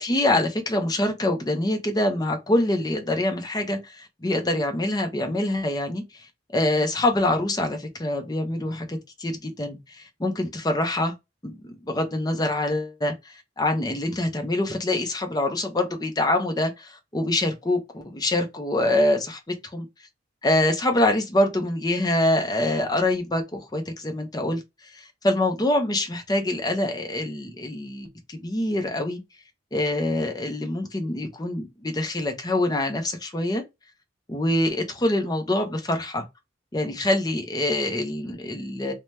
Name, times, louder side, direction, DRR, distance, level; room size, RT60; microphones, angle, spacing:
voice 1, 0.0-6.3 6.5-11.1 11.4-19.4 19.7-19.9 20.4-24.6 24.9-29.2 29.7-33.6 34.3-36.2 36.7-38.9, left 1 dB, 20° left, 0.7 m, -25 dB
2.8 x 2.2 x 3.2 m
head